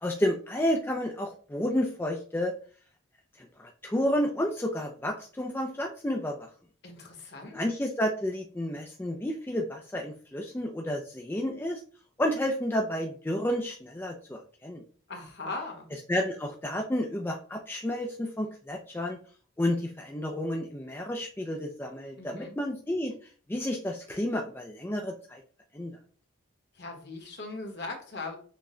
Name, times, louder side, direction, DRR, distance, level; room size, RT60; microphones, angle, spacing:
voice 1, 0.0-2.5 3.4-6.5 7.5-11.8 12.2-14.8 16.1-19.2 19.6-23.1 23.5-25.4 25.7-25.9, left 1 dB, 10° left, 1 dB, 0.3 m, -31 dB
voice 2, 6.8-7.6 15.1-15.9 22.2-22.5 26.7-28.4, left 3 dB, 55° left, 2 dB, 1.1 m, -39 dB
6.0 x 2.2 x 3.7 m, 0.43 s
head